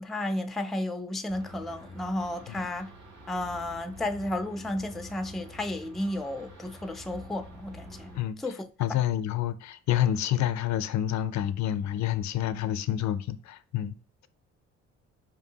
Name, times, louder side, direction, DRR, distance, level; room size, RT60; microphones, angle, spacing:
voice 1, 0.0-2.9 3.3-8.1 8.4-8.7, left 1 dB, ahead, 0.3 m, -33 dB
sound 1, 1.3-8.2, equal, 70° right, 1.4 m, -47 dB
voice 2, 8.8-13.9, left 11 dB, 70° left, 0.4 m, -28 dB
5.0 x 2.6 x 2.7 m
cardioid pair, 90°, 30 cm